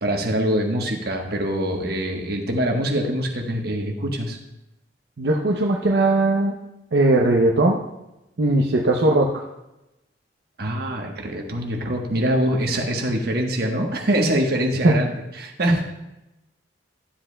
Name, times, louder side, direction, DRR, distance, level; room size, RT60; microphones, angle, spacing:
voice 1, 0.0-4.4 10.6-15.8, right 1 dB, 60° right, 1 dB, 1.2 m, -24 dB
voice 2, 5.2-6.5 6.9-7.8 8.4-9.4 14.8-15.0, right 2 dB, 75° right, -1 dB, 0.7 m, -19 dB
11.5 x 7.5 x 2.2 m, 0.92 s
head